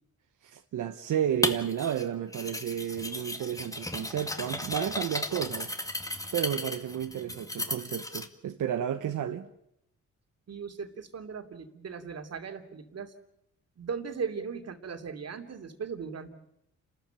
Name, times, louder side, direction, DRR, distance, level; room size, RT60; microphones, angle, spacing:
voice 1, 0.4-5.7 6.3-9.5, right 10 dB, 80° right, 1.2 m, -32 dB
sound 1, 1.4-2.0 2.3-8.3, left 1 dB, 10° left, 2.0 m, -35 dB
voice 2, 10.5-13.1 13.8-16.3, right 6 dB, 55° right, 2.8 m, -38 dB
29.5 x 14.0 x 9.1 m
cardioid pair, 90°, 31 cm